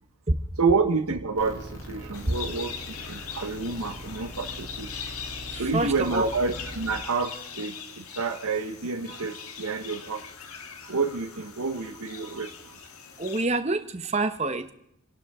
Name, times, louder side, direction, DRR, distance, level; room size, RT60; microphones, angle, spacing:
voice 1, 0.6-4.9 5.6-10.2 10.8-12.8, right 4 dB, 90° right, 4 dB, 1.2 m, -29 dB
sound 1, 1.4-6.9, equal, 60° left, 3.1 m, -41 dB
sound 2, 2.1-13.5, left 7 dB, 85° left, 1.6 m, -41 dB
voice 2, 5.5-6.3 13.2-14.7, right 2 dB, 30° right, 9 dB, 1.0 m, -27 dB
28.5 x 11.5 x 3.7 m, 0.77 s
head